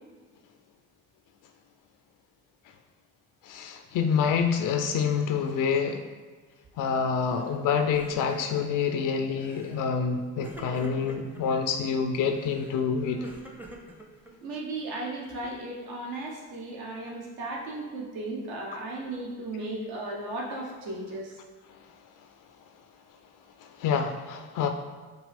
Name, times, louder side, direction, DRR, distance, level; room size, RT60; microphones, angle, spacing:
voice 1, 3.4-6.0 6.8-13.3 23.6-24.7, left 6 dB, 50° left, 6 dB, 0.5 m, -27 dB
Crying sobbing, 7.2-7.6 7.8-8.9 9.4-9.8 10.4-11.4 12.3-14.6, right 2 dB, 5° right, 0.6 m, -46 dB
voice 2, 14.4-21.3, right 2 dB, 60° right, -1 dB, 1.0 m, -35 dB
5.1 x 2.4 x 3.3 m, 1.4 s
hypercardioid pair, 50°, 42 cm